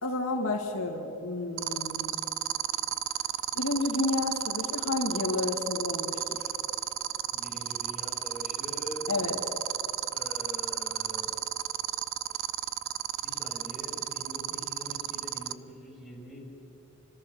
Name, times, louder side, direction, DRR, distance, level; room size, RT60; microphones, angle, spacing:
voice 1, 0.0-2.2 3.5-6.5 9.1-9.4, left 2 dB, 85° left, 1 dB, 2.2 m, -31 dB
sound 1, 1.6-15.5, right 12 dB, 65° right, 0.5 m, -31 dB
voice 2, 7.3-9.1 10.1-11.3 13.2-16.5, equal, 5° right, -3 dB, 6.1 m, -44 dB
30.0 x 13.0 x 6.9 m, 3.0 s
head